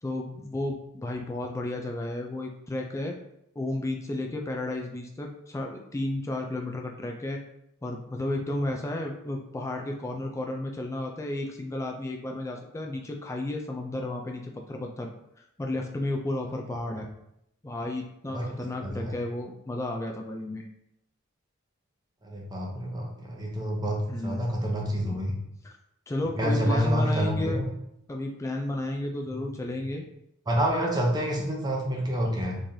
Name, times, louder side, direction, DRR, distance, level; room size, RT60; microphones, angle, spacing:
voice 1, 0.0-3.2 3.6-7.4 7.8-15.1 15.6-17.1 17.6-20.7 24.1-24.5 25.0-25.2 25.6-25.8 26.1-27.6 28.1-30.0, left 2 dB, 15° left, 1 dB, 0.3 m, -32 dB
voice 2, 18.8-19.1 22.2-25.3 26.4-27.6 30.5-32.6, equal, 20° right, -1 dB, 0.7 m, -28 dB
3.7 x 3.1 x 2.7 m, 0.79 s
head